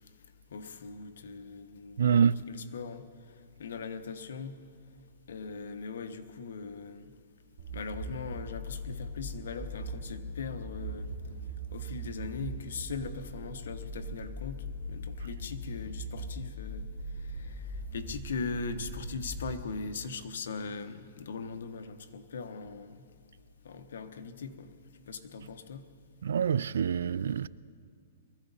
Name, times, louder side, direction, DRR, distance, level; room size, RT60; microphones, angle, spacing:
voice 1, 0.5-3.1 3.6-4.6 5.3-7.1 7.7-11.1 11.7-14.6 14.9-16.9 17.3-23.0 23.6-24.7 25.1-25.8, left 5 dB, 75° left, 1.2 m, -40 dB
voice 2, 2.0-2.4 26.2-27.5, right 7 dB, 80° right, 0.4 m, -26 dB
sound 1, 7.6-19.5, right 1 dB, 30° right, 4.6 m, -40 dB
23.0 x 15.5 x 4.1 m
hypercardioid pair, 160°, 0 cm